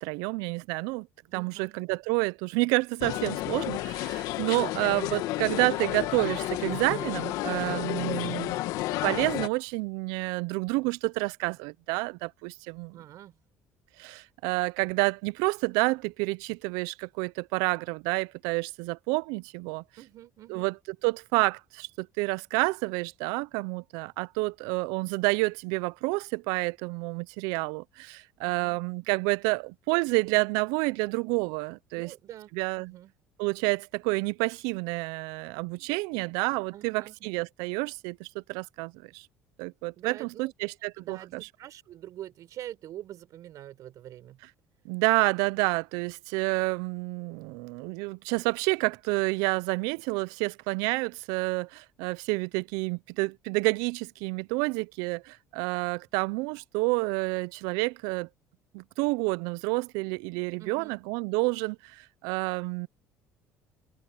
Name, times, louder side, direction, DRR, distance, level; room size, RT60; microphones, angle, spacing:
voice 1, 0.0-1.1 1.3-8.6 9.0-13.0 14.0-19.8 20.5-20.7 21.0-32.1 32.5-33.0 33.4-39.3 39.6-41.5 44.9-58.3 58.7-62.9, right 26 dB, 85° right, 0.4 m, -29 dB
voice 2, 1.3-1.7 12.9-13.4 20.0-20.7 32.0-33.1 36.7-37.5 40.0-40.5 41.0-44.4 60.6-61.0, right 12 dB, 60° right, 5.1 m, -45 dB
sound 1, 3.0-9.5, left 16 dB, 75° left, 1.7 m, -31 dB
supercardioid pair, 90°, 6 cm